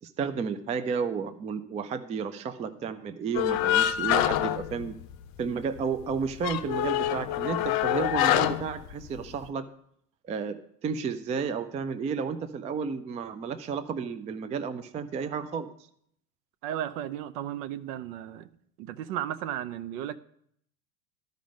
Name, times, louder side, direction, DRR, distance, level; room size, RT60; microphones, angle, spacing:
voice 1, 0.0-5.0 5.4-9.6 10.3-15.7, right 6 dB, 15° right, 0.3 m, -32 dB
sound 1, 3.3-5.5 5.8-5.9 6.2-9.5, left 12 dB, 45° left, 0.6 m, -26 dB
voice 2, 16.6-18.5 18.8-20.2, right 11 dB, 65° right, 0.7 m, -34 dB
11.5 x 5.2 x 5.2 m
hypercardioid pair, 80°, 49 cm